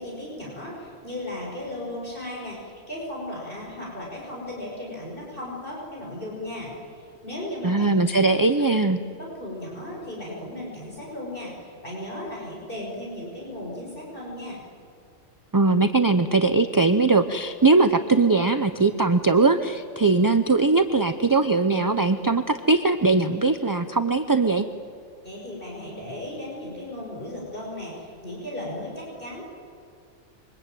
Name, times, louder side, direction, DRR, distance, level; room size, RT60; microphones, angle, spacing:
voice 1, 0.0-7.9 8.4-8.5 9.1-14.6 25.2-29.5, left 1 dB, 45° left, -3 dB, 5.8 m, -36 dB
voice 2, 7.6-9.0 15.5-24.7, right 3 dB, 20° right, 9 dB, 0.6 m, -20 dB
26.5 x 24.5 x 9.2 m, 2.3 s
omnidirectional pair, 1.3 m